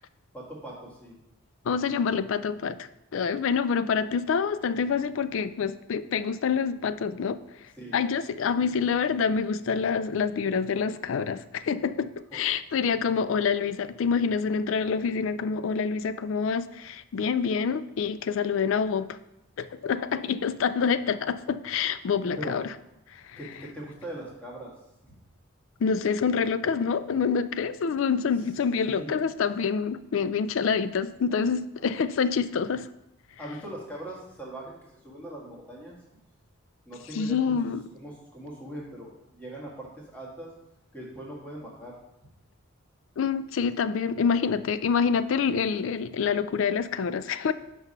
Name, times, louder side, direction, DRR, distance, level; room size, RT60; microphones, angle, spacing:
voice 1, 0.3-1.2 7.8-8.0 12.3-12.4 22.4-22.6 23.4-24.7 25.0-25.1 28.9-29.1 31.8-31.9 33.4-34.7 35.0-36.0 36.8-37.6 38.0-40.5 40.9-41.9, right 1 dB, 5° left, -5 dB, 1.6 m, -40 dB
voice 2, 1.7-7.4 7.9-19.2 19.6-22.6 23.2-23.4 25.8-32.9 37.1-37.8 43.2-47.5, left 6 dB, 65° left, 14 dB, 0.3 m, -27 dB
5.8 x 4.7 x 5.4 m, 0.88 s
head